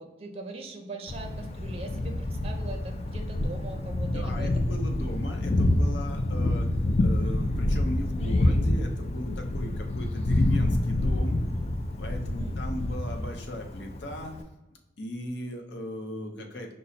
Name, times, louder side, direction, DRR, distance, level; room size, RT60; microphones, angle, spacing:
voice 1, 0.0-4.6 12.4-12.9, right 2 dB, 35° right, 3 dB, 0.5 m, -41 dB
Thunder, 1.1-14.4, left 1 dB, 35° left, 0.3 m, -27 dB
voice 2, 4.1-6.7 7.0-11.4 12.0-14.3 15.0-16.7, left 1 dB, 85° left, 4 dB, 0.7 m, -37 dB
5.3 x 2.0 x 4.0 m, 1.0 s
head